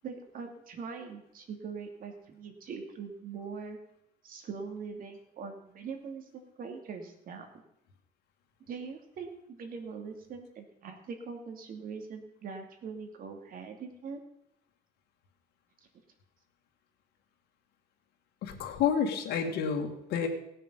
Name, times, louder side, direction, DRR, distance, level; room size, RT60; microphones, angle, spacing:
voice 1, 0.0-3.8 4.2-7.6 8.7-14.2, right 5 dB, 55° right, 4 dB, 2.6 m, -42 dB
voice 2, 18.4-20.3, left 7 dB, 75° left, 3 dB, 2.2 m, -29 dB
17.5 x 6.8 x 5.6 m, 0.79 s
cardioid pair, 110°, 17 cm